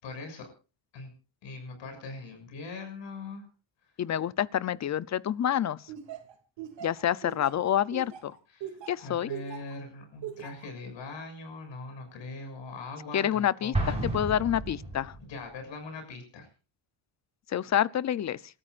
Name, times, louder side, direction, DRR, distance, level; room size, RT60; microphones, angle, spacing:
voice 1, 0.0-0.5 0.9-1.1 1.4-3.4 8.5-14.1 15.2-16.5, left 3 dB, 80° left, 6.9 m, -41 dB
voice 2, 4.0-5.8 6.8-8.3 8.9-9.3 13.1-15.1 17.5-18.4, left 10 dB, 40° left, 0.6 m, -28 dB
Laughter, 5.9-9.7 10.2-10.7, right 10 dB, 75° right, 2.8 m, -40 dB
Explosion, 13.7-15.4, right 2 dB, 15° right, 5.8 m, -32 dB
29.5 x 13.5 x 2.5 m
cardioid pair, 120°, 44 cm